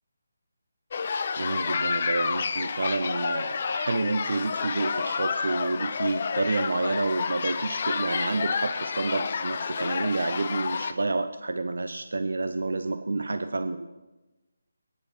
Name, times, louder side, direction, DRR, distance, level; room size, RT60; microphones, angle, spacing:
sound 1, 0.9-10.9, left 5 dB, 45° left, 0.8 m, -30 dB
voice 1, 1.0-13.9, right 3 dB, 75° right, 9 dB, 0.8 m, -29 dB
22.5 x 9.9 x 4.4 m, 1.1 s
figure-of-eight pair, 160°, 0 cm